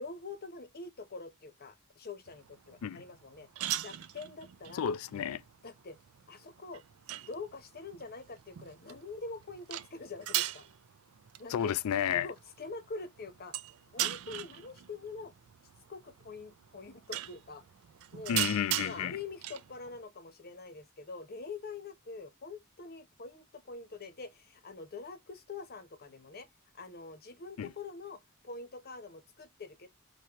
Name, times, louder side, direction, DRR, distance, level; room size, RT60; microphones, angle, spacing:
voice 1, 0.0-3.5 3.8-4.9 5.6-6.0 6.3-6.8 7.3-10.7 11.4-11.7 12.1-13.6 13.9-15.3 15.9-17.6 18.1-18.5 18.8-26.5 26.7-29.9, left 4 dB, 45° left, 0.9 m, -45 dB
sound 1, 2.3-20.0, right 13 dB, 70° right, 0.4 m, -40 dB
voice 2, 4.8-5.4 11.5-12.3 18.3-19.1 27.6-27.7, left 8 dB, 80° left, 0.3 m, -31 dB
4.8 x 2.8 x 2.9 m
head